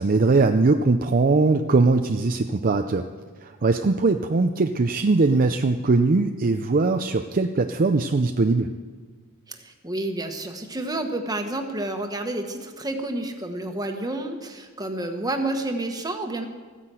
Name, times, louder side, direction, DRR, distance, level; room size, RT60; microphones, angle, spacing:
voice 1, 0.0-3.1 3.4-8.7, right 3 dB, 40° right, 6 dB, 0.5 m, -21 dB
voice 2, 9.5-16.5, right 2 dB, 15° right, 5 dB, 1.3 m, -30 dB
14.5 x 9.9 x 7.7 m, 1.5 s
head